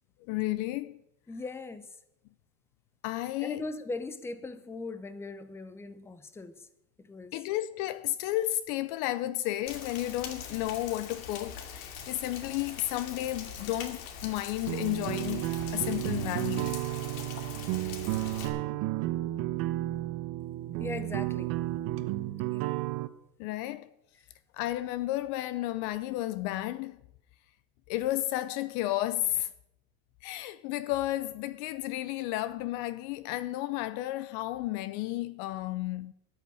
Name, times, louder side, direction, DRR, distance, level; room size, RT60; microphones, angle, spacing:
voice 1, 0.3-1.0 3.0-3.7 7.3-16.8 23.4-23.9 24.5-27.0 27.9-29.5 30.2-36.1, left 15 dB, 45° left, 0.5 m, -32 dB
voice 2, 1.3-1.9 3.4-6.7 7.0-7.3 20.8-21.6 22.5-22.8, left 3 dB, 5° left, 0.7 m, -39 dB
Rain, 9.7-18.5, left 7 dB, 65° left, 2.5 m, -42 dB
sound 1, 14.7-23.1, right 16 dB, 45° right, 0.9 m, -32 dB
13.5 x 6.8 x 10.0 m
supercardioid pair, 150°, 43 cm